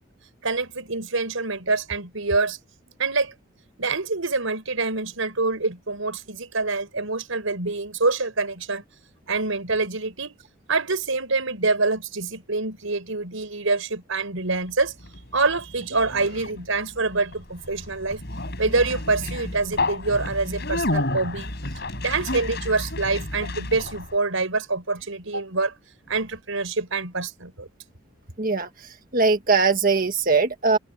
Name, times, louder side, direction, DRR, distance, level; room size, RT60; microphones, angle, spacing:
voice 1, 0.4-2.6 3.0-3.3 3.8-8.8 9.3-10.4 10.7-14.9 15.3-18.2 18.6-21.5 22.0-25.7 26.1-27.7, right 3 dB, 80° right, 4.8 m, -26 dB
Conversation, 14.7-24.2, left 2 dB, 55° left, 5.9 m, -31 dB
voice 2, 28.4-28.7 29.1-30.8, right 4 dB, 45° right, 1.5 m, -20 dB
open air
head